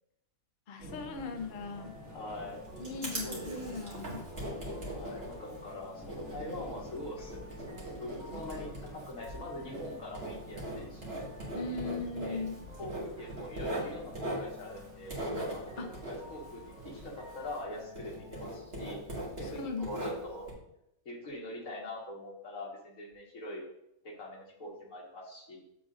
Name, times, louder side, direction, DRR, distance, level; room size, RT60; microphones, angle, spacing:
voice 1, 0.7-1.9 2.8-4.2 11.5-12.6 15.8-15.9 19.5-19.9, left 4 dB, 50° left, 5 dB, 0.7 m, -38 dB
sound 1, 0.8-17.6, equal, 65° right, 2.7 m, -51 dB
sound 2, 1.7-18.6, left 1 dB, 5° right, 1.2 m, -53 dB
voice 2, 2.1-2.8 3.2-4.5 4.9-11.3 12.2-12.5 12.8-15.2 15.5-19.0 19.4-20.5 21.1-23.7 24.0-25.6, left 1 dB, 75° left, -2 dB, 1.9 m, -43 dB
Writing, 2.3-17.7 17.9-20.5, right 1 dB, 45° right, 2.1 m, -40 dB
7.9 x 7.5 x 2.5 m, 0.82 s
omnidirectional pair, 1.5 m